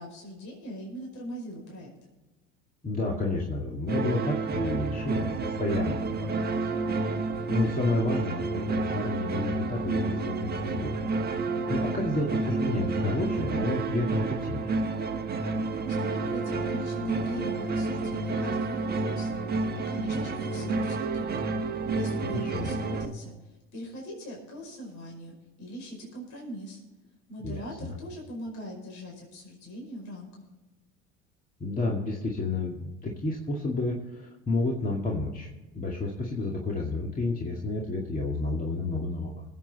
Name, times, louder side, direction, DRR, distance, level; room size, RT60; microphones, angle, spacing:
voice 1, 0.0-1.9 15.8-21.3 21.9-26.8 27.3-30.3, equal, 55° left, -1 dB, 5.2 m, -40 dB
voice 2, 2.8-6.3 6.6-6.7 7.5-11.1 11.4-14.8 22.2-22.7 27.4-28.0 31.6-39.4, left 2 dB, 25° left, -1 dB, 2.2 m, -31 dB
sound 1, 3.9-23.1, right 3 dB, 25° right, 1.4 m, -30 dB
20.0 x 8.3 x 4.2 m, 1.1 s
hypercardioid pair, 85°, 36 cm